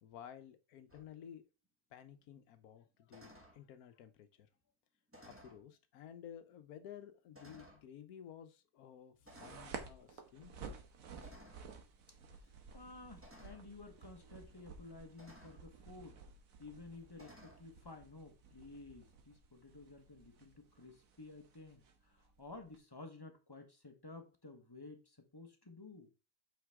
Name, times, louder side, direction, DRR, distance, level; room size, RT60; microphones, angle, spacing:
voice 1, 0.0-1.4 1.9-4.5 5.3-10.5, left 9 dB, 80° left, 1.3 m, -54 dB
sound 1, 0.9-1.1 3.1-3.6 5.1-5.6 6.5-6.6 7.3-7.9 9.3-9.8 11.2-11.7 13.2-13.7 15.2-15.6 17.1-17.6, equal, 10° right, 1.4 m, -58 dB
sound 2, 9.3-22.8, right 5 dB, 70° right, 1.4 m, -54 dB
voice 2, 12.4-16.2 16.6-26.1, left 3 dB, 15° left, 1.1 m, -53 dB
7.9 x 4.5 x 3.6 m
omnidirectional pair, 1.6 m